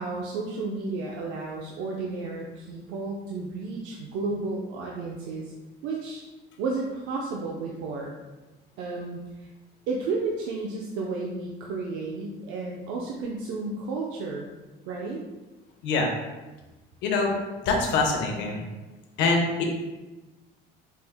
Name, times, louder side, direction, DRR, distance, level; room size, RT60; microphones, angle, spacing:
voice 1, 0.0-5.5 5.8-6.2 6.6-8.1 8.8-9.5 9.9-14.5 14.9-15.2, right 3 dB, 75° right, -2 dB, 0.5 m, -32 dB
voice 2, 17.0-17.3 17.7-18.6 19.2-19.4, left 3 dB, 65° left, 1 dB, 0.7 m, -24 dB
4.4 x 2.0 x 3.4 m, 1.2 s
cardioid pair, 170°, 20 cm